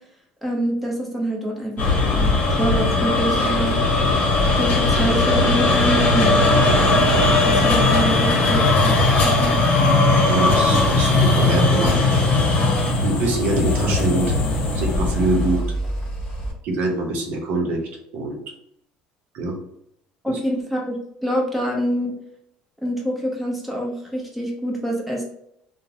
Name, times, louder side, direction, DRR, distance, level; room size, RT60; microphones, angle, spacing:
voice 1, 0.4-3.8 4.6-6.6 7.4-9.6 20.2-21.0 21.2-22.1 22.8-25.2, right 1 dB, ahead, -2 dB, 0.8 m, -26 dB
sound 1, 1.8-15.6, left 2 dB, 50° left, 0.9 m, -18 dB
sound 2, 9.5-16.5, right 1 dB, 20° left, 1.5 m, -32 dB
voice 2, 10.1-12.0 13.0-14.3 14.7-15.7 16.6-17.8 18.1-18.4 19.3-19.6 20.3-20.4, right 2 dB, 65° right, 1 dB, 0.8 m, -24 dB
3.0 x 2.1 x 2.6 m, 0.74 s
supercardioid pair, 90°, 3 cm